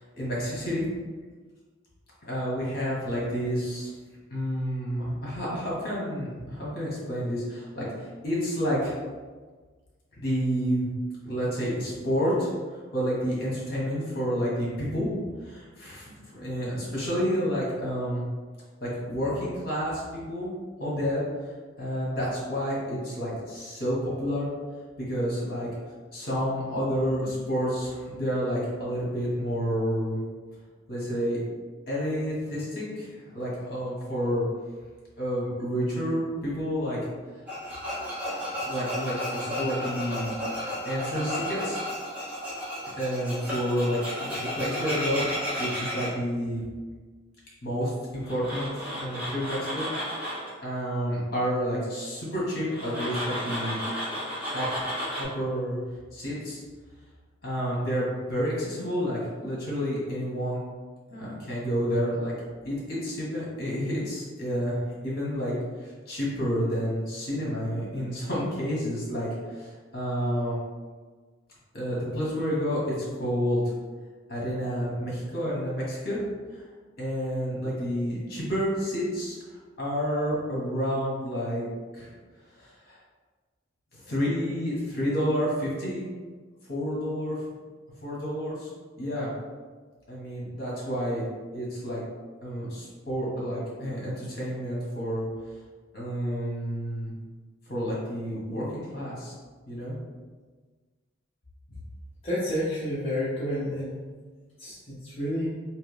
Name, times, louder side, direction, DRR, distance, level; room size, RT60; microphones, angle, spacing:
voice 1, 0.1-0.9 2.2-3.9 4.3-7.8 8.2-8.9 10.2-10.9 11.2-15.1 15.4-18.2 18.8-20.5 20.8-21.2 21.8-24.5 25.0-25.7 26.1-30.2 30.9-31.4 31.9-34.4 35.2-37.0 38.6-39.1 39.4-40.3 40.6-41.8 42.9-46.6 47.6-49.9 50.1-50.3 50.6-53.8 54.5-54.7 55.2-55.8 56.1-56.6 57.4-60.6 61.1-62.3 62.6-64.7 65.0-65.5 65.8-70.6 71.7-73.6 74.3-76.2 76.5-76.6 77.0-79.4 79.8-81.6 81.9-82.1 82.5-83.0 83.9-86.1 86.7-87.4 88.0-88.7 89.0-89.3 90.1-91.2 91.5-92.0 92.4-95.3 95.9-97.1 97.7-99.3 99.7-100.0, equal, 50° left, -6 dB, 1.4 m, -29 dB
Tools, 37.5-46.1 48.2-50.5 52.7-55.2, equal, 5° right, 1.0 m, -33 dB
voice 2, 102.2-103.9 104.6-105.5, equal, 30° left, -11 dB, 0.8 m, -30 dB
3.4 x 2.9 x 3.4 m, 1.4 s
head